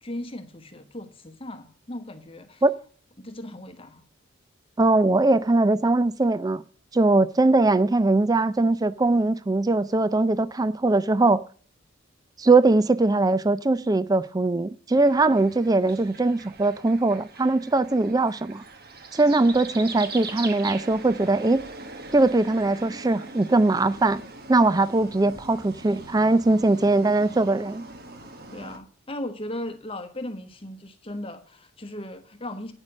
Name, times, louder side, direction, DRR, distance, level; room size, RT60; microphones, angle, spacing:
voice 1, 0.0-2.6 3.2-4.0 28.5-32.7, left 1 dB, 25° left, 1.1 m, -37 dB
voice 2, 4.8-6.6 6.9-11.4 12.4-18.6 19.1-21.7 22.1-24.2 24.5-27.8, right 2 dB, 20° right, 0.4 m, -21 dB
sound 1, 14.9-28.8, right 3 dB, 45° right, 1.3 m, -41 dB
9.0 x 6.4 x 6.1 m
head